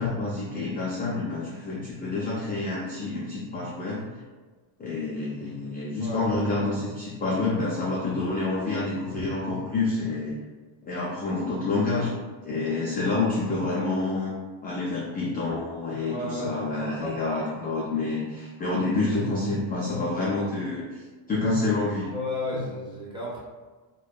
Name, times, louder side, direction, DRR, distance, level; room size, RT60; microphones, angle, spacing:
voice 1, 0.0-4.0 4.8-10.3 10.8-12.1 12.4-14.3 14.6-22.1 22.5-22.6, left 3 dB, 20° left, -7 dB, 0.3 m, -28 dB
voice 2, 15.9-17.2 22.1-23.4, left 1 dB, 10° right, -6 dB, 0.7 m, -33 dB
2.6 x 2.2 x 2.2 m, 1.3 s
cardioid pair, 110°, 49 cm